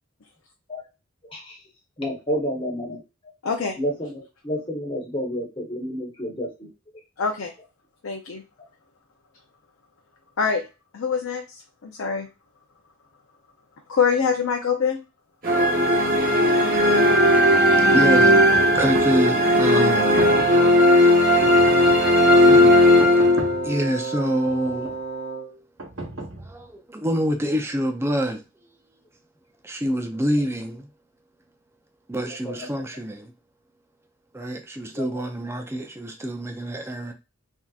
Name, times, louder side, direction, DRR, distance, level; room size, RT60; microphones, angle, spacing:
voice 1, 1.2-1.6 2.0-3.0 3.8-6.7 32.4-32.8 34.9-35.1, equal, 25° left, 1.0 m, -30 dB
voice 2, 3.4-3.8 7.2-7.5 8.0-8.4 10.4-10.6 10.9-11.4 11.8-12.3 13.9-15.0, left 6 dB, 70° left, 0.5 m, -24 dB
sound 1, 15.4-23.8, left 1 dB, 40° right, 0.9 m, -16 dB
voice 3, 17.2-20.1 22.5-22.8 23.6-24.9 26.5-28.4 29.6-30.9 32.1-33.3 34.3-37.1, equal, 10° right, 0.4 m, -27 dB
sound 2, 18.5-19.2 19.9-20.7 21.4-22.2 23.0-23.7 24.5-25.1 25.8-26.7, right 2 dB, 70° right, 0.9 m, -34 dB
Wind instrument woodwind instrument, 19.9-25.6, right 4 dB, 90° right, 0.5 m, -31 dB
3.4 x 2.7 x 2.3 m
head